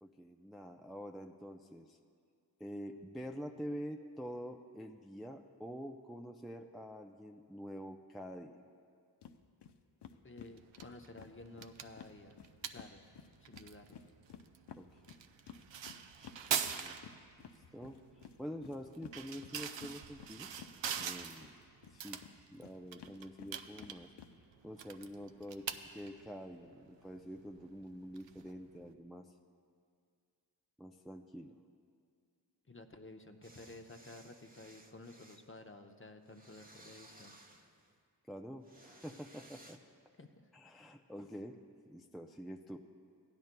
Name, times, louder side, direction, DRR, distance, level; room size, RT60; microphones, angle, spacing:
voice 1, 0.0-2.0 2.6-8.6 14.8-14.9 16.5-17.0 17.5-18.0 18.4-20.5 21.0-21.5 21.9-22.2 22.5-24.1 24.6-25.7 25.9-29.3 30.8-31.6 38.3-39.8 40.5-41.6 41.9-42.8, equal, ahead, 2 dB, 0.4 m, -46 dB
sound 1, 9.2-9.4 9.6-9.7 10.0-12.9 13.2-21.5 21.8-24.3, left 8 dB, 65° left, 0.6 m, -54 dB
voice 2, 10.2-12.4 12.7-13.1 13.4-14.0 32.7-37.3 40.2-40.5, left 2 dB, 30° left, 5 dB, 0.7 m, -53 dB
sound 2, 10.5-28.9, right 7 dB, 75° right, 0.6 m, -45 dB
sound 3, 33.4-35.5 36.3-38.0 38.6-39.8, right 1 dB, 20° right, 0.8 m, -59 dB
16.0 x 10.5 x 2.2 m, 2.2 s
cardioid pair, 40°, 44 cm